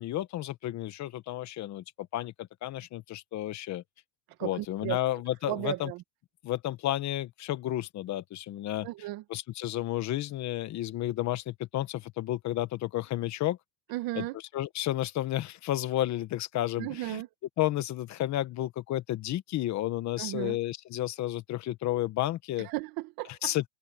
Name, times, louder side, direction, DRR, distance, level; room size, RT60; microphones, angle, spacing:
voice 1, 0.0-3.8 4.4-5.9 6.4-8.9 9.3-13.6 14.1-14.2 14.5-17.2 17.6-22.7 23.4-23.7, left 14 dB, 40° left, 1.2 m, -32 dB
voice 2, 4.4-5.0 5.4-6.0 8.8-9.2 13.9-14.4 16.8-17.3 20.2-20.6 22.6-23.5, right 17 dB, 55° right, 1.7 m, -35 dB
supercardioid pair, 135°, 41 cm